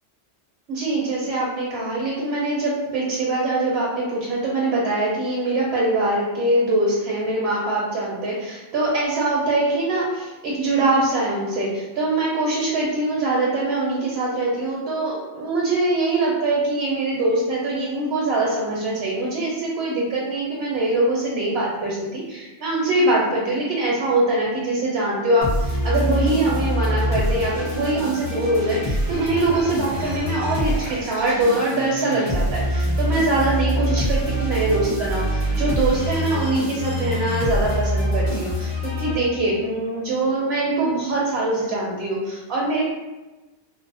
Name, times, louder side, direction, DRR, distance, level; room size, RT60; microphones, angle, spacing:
voice 1, 0.7-42.8, right 2 dB, 65° right, -5 dB, 0.8 m, -23 dB
sound 1, 25.4-39.7, equal, 35° left, 0.8 m, -25 dB
2.6 x 2.0 x 2.6 m, 1.1 s
omnidirectional pair, 1.2 m